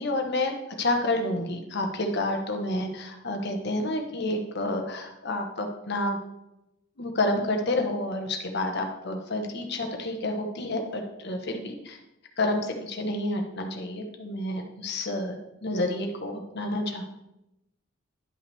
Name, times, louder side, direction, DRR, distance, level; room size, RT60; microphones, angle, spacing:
voice 1, 0.0-6.2 7.0-12.0 12.4-17.1, left 2 dB, 55° left, 3 dB, 1.1 m, -29 dB
11.0 x 5.6 x 3.4 m, 0.89 s
head